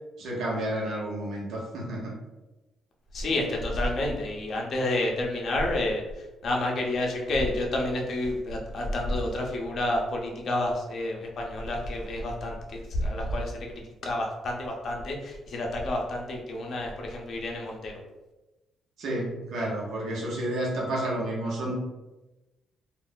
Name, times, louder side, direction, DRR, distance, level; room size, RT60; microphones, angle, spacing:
voice 1, 0.2-2.1 19.0-21.7, right 1 dB, 70° right, -4 dB, 0.9 m, -31 dB
voice 2, 3.1-6.0 6.4-17.9, left 1 dB, 55° left, 0 dB, 0.7 m, -29 dB
2.4 x 2.1 x 3.7 m, 1.1 s
cardioid pair, 90°, 0 cm